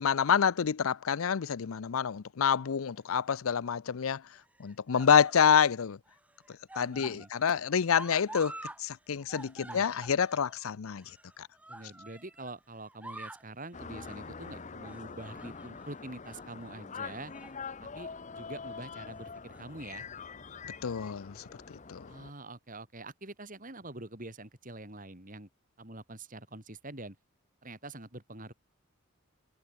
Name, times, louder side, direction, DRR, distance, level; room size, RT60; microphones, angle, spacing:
voice 1, 0.0-4.2 4.6-6.0 6.8-11.0 11.4-11.5 20.8-21.3 21.7-22.0, left 7 dB, 80° left, 0.5 m, -27 dB
sound 1, 3.0-3.5 4.4-5.7 6.1-8.8 9.1-12.5 12.9-13.5 14.0-14.3 14.8-15.9 16.2-16.5 17.1-17.6 18.0-18.2 19.3-19.9 20.8-20.9, right 1 dB, 5° right, 1.0 m, -48 dB
voice 2, 6.8-7.3 9.6-9.9 11.7-17.3 17.8-20.1 22.1-25.5 25.8-27.2 27.6-28.5, right 2 dB, 40° right, 4.3 m, -45 dB
sound 2, 13.7-22.3, left 5 dB, 35° left, 0.8 m, -44 dB
head